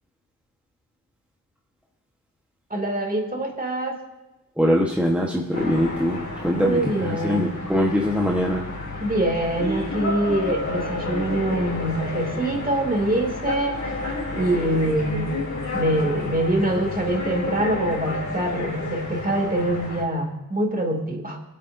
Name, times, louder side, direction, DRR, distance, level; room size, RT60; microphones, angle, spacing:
voice 1, 2.7-4.0 6.6-7.5 9.0-13.9 14.3-15.3 15.7-21.4, right 1 dB, 25° right, 2 dB, 2.4 m, -24 dB
voice 2, 4.6-8.9, equal, 5° right, -2 dB, 1.2 m, -23 dB
sound 1, 5.5-20.0, left 2 dB, 55° left, 3.5 m, -30 dB
24.0 x 8.6 x 2.7 m, 1.0 s
cardioid pair, 70°, 34 cm